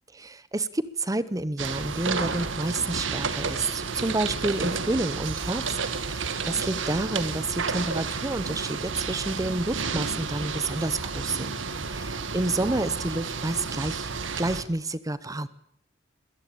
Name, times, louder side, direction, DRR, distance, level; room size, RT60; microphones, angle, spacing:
voice 1, 0.1-11.5 11.9-14.1 14.4-15.5, right 2 dB, 20° right, 16 dB, 0.8 m, -29 dB
sound 1, 1.6-14.6, right 5 dB, 85° right, 1.8 m, -31 dB
21.5 x 17.5 x 8.7 m, 0.72 s
head